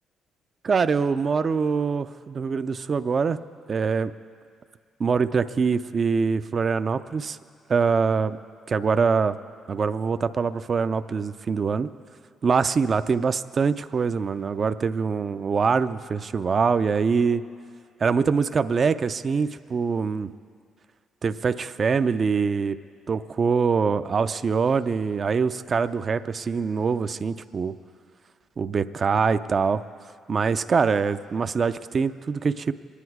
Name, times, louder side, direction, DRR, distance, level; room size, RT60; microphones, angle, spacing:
voice 1, 0.6-3.4 3.7-4.1 5.0-7.4 7.7-8.4 8.7-9.4 9.7-11.9 12.4-17.4 18.0-20.3 21.2-22.8 23.1-27.7 28.6-29.8 30.3-32.7, right 5 dB, 45° right, 12 dB, 0.4 m, -24 dB
23.0 x 10.0 x 4.8 m, 2.2 s
cardioid pair, 90°, 0 cm